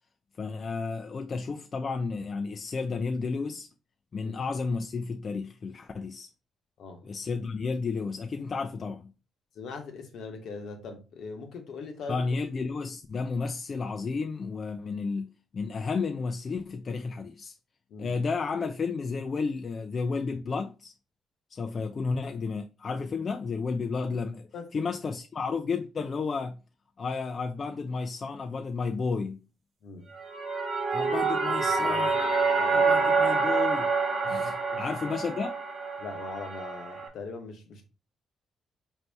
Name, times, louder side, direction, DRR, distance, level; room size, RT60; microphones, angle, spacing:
voice 1, 0.4-3.7 4.1-6.3 7.0-9.1 12.1-17.5 18.0-20.9 21.5-24.4 24.7-26.6 27.0-29.4 30.9-32.2 32.7-33.9 34.3-35.5, left 4 dB, 40° left, 0.4 m, -32 dB
voice 2, 9.5-12.2 17.9-18.2 24.5-24.7 29.8-30.1 31.8-32.3 32.6-33.1 34.2-34.8 36.0-37.8, left 4 dB, 75° left, 1.0 m, -41 dB
sound 1, 30.1-37.1, right 4 dB, 50° right, 1.0 m, -27 dB
4.2 x 2.7 x 3.3 m
cardioid pair, 90°, 0 cm